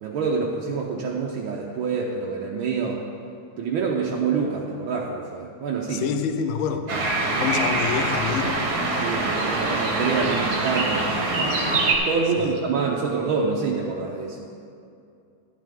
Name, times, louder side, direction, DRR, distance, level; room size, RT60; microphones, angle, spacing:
voice 1, 0.0-3.0 3.6-6.0 7.3-7.5 9.0-11.6 12.0-14.4, right 5 dB, 75° right, -2 dB, 1.6 m, -26 dB
voice 2, 5.9-6.9 7.4-8.6 12.4-12.5, left 7 dB, 75° left, 7 dB, 1.5 m, -27 dB
sound 1, 6.9-11.9, right 2 dB, 50° right, 1.7 m, -24 dB
11.0 x 10.5 x 3.7 m, 2.4 s
omnidirectional pair, 2.3 m